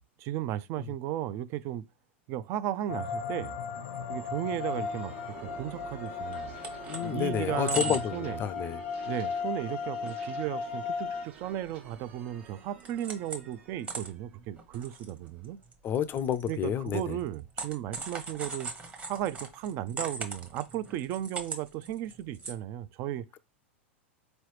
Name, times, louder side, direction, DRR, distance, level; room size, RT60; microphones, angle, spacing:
voice 1, 0.0-1.8 2.3-3.6 4.1-5.1 5.4-6.5 7.0-8.4 9.1-15.6 16.5-18.7 19.0-23.2, right 12 dB, 45° right, 0.4 m, -35 dB
sound 1, 2.9-11.3, left 5 dB, 75° left, 0.6 m, -36 dB
sound 2, 3.7-15.2, right 6 dB, 65° right, 1.3 m, -49 dB
sound 3, 6.1-6.2 6.3-7.1 7.5-8.2 8.6-8.8 9.2-9.3 9.6-10.2 10.5-10.6 11.1-12.2 12.5-13.5 13.8-22.5, right 2 dB, 20° right, 1.0 m, -39 dB
voice 2, 6.9-8.8 15.8-17.2, left 9 dB, 30° left, 0.4 m, -30 dB
4.0 x 3.0 x 3.2 m
hypercardioid pair, 105°, 7 cm